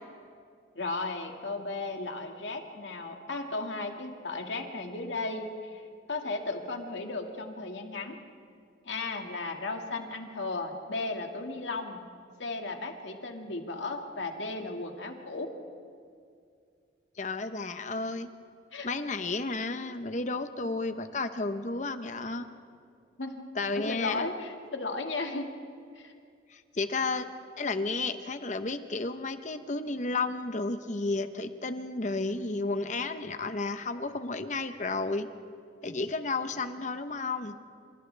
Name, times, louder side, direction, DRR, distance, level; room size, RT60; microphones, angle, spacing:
voice 1, 0.8-5.8 6.1-8.2 8.8-12.0 12.4-15.5 18.7-18.9 23.2-23.5 23.7-25.5 26.0-26.1, left 3 dB, 80° left, 3 dB, 2.1 m, -35 dB
voice 2, 17.2-18.3 18.8-22.5 23.5-24.2 26.5-27.3 27.6-35.3 35.8-37.6, left 3 dB, 40° left, 9 dB, 0.9 m, -32 dB
29.0 x 27.0 x 3.4 m, 2.3 s
head